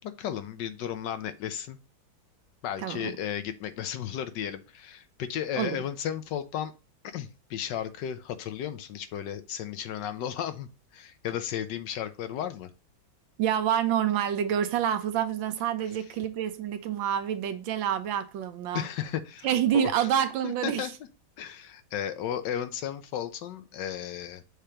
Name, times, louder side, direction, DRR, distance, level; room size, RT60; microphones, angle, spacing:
voice 1, 0.0-1.8 2.6-6.7 7.0-12.7 18.7-19.5 19.7-20.1 20.4-20.9 21.4-24.4, left 10 dB, 70° left, 1.2 m, -34 dB
voice 2, 2.8-3.1 5.6-5.8 13.4-18.8 19.4-20.9, right 9 dB, 75° right, 1.5 m, -27 dB
6.6 x 2.9 x 4.8 m
omnidirectional pair, 2.1 m